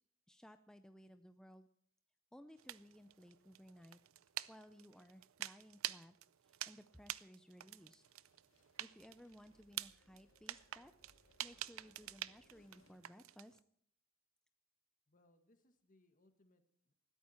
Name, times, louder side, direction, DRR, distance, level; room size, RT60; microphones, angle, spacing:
voice 1, 0.3-1.7 2.3-4.0 4.5-6.2 6.4-8.0 8.8-10.9 11.4-13.6, equal, 5° left, 8 dB, 0.5 m, -59 dB
sound 1, 2.6-13.6, right 14 dB, 80° right, 0.5 m, -48 dB
sound 2, 7.5-13.0, left 2 dB, 70° left, 2.2 m, -73 dB
voice 2, 15.1-16.9, left 1 dB, 40° left, 7 dB, 1.8 m, -72 dB
19.5 x 13.5 x 4.4 m, 0.67 s
head